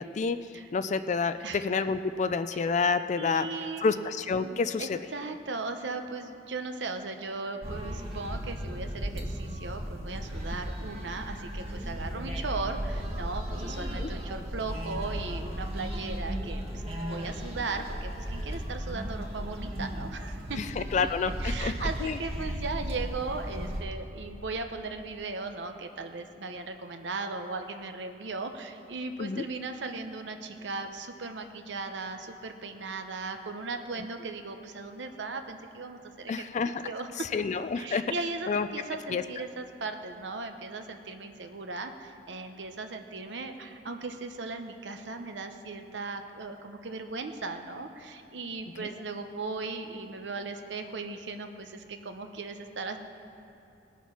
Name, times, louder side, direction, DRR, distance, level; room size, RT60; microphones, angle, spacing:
voice 1, 0.0-0.4 0.7-3.5 3.8-5.0 14.0-14.1 20.6-22.2 29.2-29.4 36.3-36.8 37.3-38.1 38.5-38.7 39.1-39.2 48.8-48.9, left 5 dB, 40° left, 11 dB, 0.4 m, -29 dB
voice 2, 3.2-3.9 4.4-20.8 21.4-36.5 36.8-37.3 37.6-53.0, right 3 dB, 85° right, 6 dB, 0.8 m, -37 dB
sound 1, 7.6-23.8, equal, 35° right, 1.4 m, -35 dB
19.0 x 7.2 x 5.8 m, 2.8 s
head